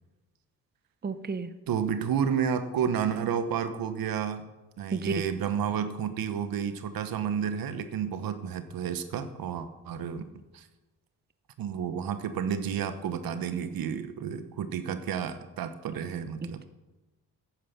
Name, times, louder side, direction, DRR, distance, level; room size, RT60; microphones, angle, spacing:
voice 1, 1.0-1.5 4.9-5.1 16.4-16.6, right 5 dB, 25° right, 12 dB, 0.8 m, -32 dB
voice 2, 1.7-4.4 4.8-10.2 10.5-10.7 11.6-16.6, right 7 dB, 70° right, 10 dB, 1.2 m, -31 dB
10.5 x 8.8 x 5.7 m, 1.1 s
cardioid pair, 70°, 36 cm